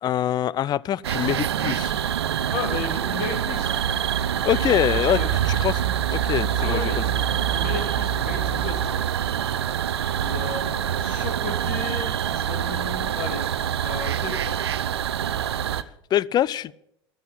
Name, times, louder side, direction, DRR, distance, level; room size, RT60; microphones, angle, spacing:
voice 1, 0.0-1.9 4.4-5.2 5.5-5.8 6.1-6.8 16.1-16.7, left 11 dB, 30° left, 0.5 m, -24 dB
sound 1, 1.0-15.8, right 9 dB, 70° right, 0.7 m, -25 dB
voice 2, 2.5-3.8 5.1-5.3 6.6-7.0 7.5-9.0 10.2-13.5 13.8-14.6, left 5 dB, 55° left, 3.2 m, -34 dB
13.5 x 11.5 x 7.4 m
figure-of-eight pair, 75°, 14 cm